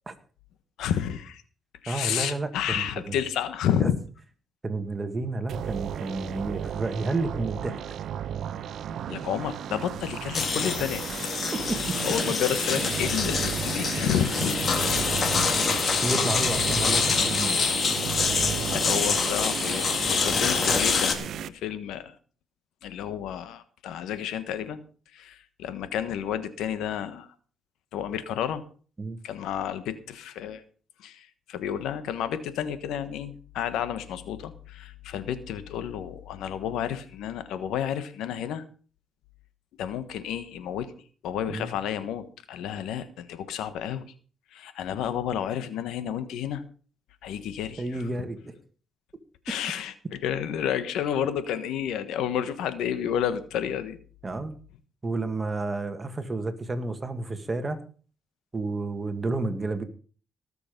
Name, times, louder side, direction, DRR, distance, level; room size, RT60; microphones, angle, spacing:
voice 1, 0.8-1.4 1.8-4.0 9.1-11.0 12.0-14.5 15.7-16.1 18.7-22.1 22.8-24.8 25.1-27.3 27.9-28.6 29.2-30.6 31.0-38.6 39.8-40.9 41.2-44.0 44.5-46.6 47.2-48.1 49.4-54.0, left 9 dB, 85° left, 12 dB, 1.3 m, -31 dB
voice 2, 1.9-3.2 3.8-3.9 4.6-8.0 10.6-10.9 11.5-12.0 16.0-17.6 20.2-20.5 29.0-29.2 41.5-41.7 47.8-48.6 54.2-54.5 55.0-57.8 58.5-59.8, right 3 dB, 25° right, 7 dB, 1.9 m, -31 dB
sound 1, 5.5-21.5, right 9 dB, 70° right, 0.7 m, -34 dB
sound 2, 10.3-21.2, left 5 dB, 50° left, 2.2 m, -26 dB
19.0 x 6.9 x 5.3 m, 0.41 s
cardioid pair, 90°, 0 cm